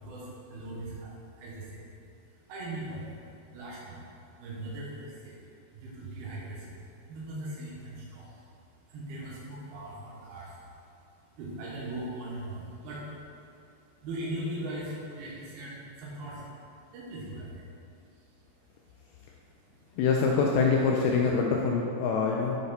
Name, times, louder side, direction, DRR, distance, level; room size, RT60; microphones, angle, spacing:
voice 1, 0.0-4.0 4.4-5.4 5.7-8.5 8.8-16.5 16.9-18.4 18.9-20.0, right 1 dB, 75° right, -6 dB, 2.9 m, -41 dB
voice 2, 20.0-22.6, left 5 dB, 85° left, -1 dB, 2.2 m, -25 dB
7.8 x 4.2 x 4.0 m, 2.6 s
omnidirectional pair, 4.8 m